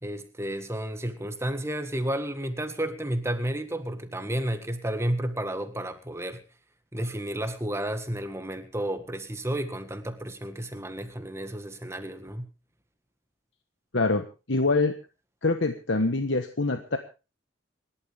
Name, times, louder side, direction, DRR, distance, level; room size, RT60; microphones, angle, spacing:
voice 1, 0.0-6.4 6.9-12.5, right 1 dB, 15° right, 8 dB, 1.7 m, -32 dB
voice 2, 13.9-14.9 15.4-17.0, left 3 dB, 65° left, 7 dB, 1.3 m, -25 dB
27.0 x 11.5 x 3.6 m, 0.32 s
head